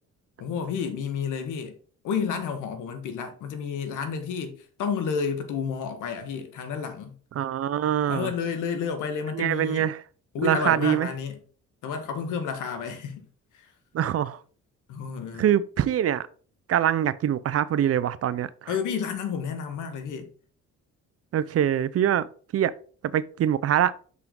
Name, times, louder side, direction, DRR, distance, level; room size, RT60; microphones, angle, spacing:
voice 1, 0.4-1.8 2.0-7.2 8.1-9.9 10.3-11.4 11.8-13.3 13.5-13.7 14.9-15.5 18.7-20.3, left 6 dB, 85° left, 1.4 m, -30 dB
voice 2, 7.4-8.3 9.3-10.0 10.4-11.1 13.9-14.4 15.4-16.3 16.7-18.7 21.3-22.3 22.5-22.7 23.1-23.9, right 10 dB, 50° right, 0.5 m, -24 dB
6.0 x 5.6 x 3.8 m
cardioid pair, 90°, 30 cm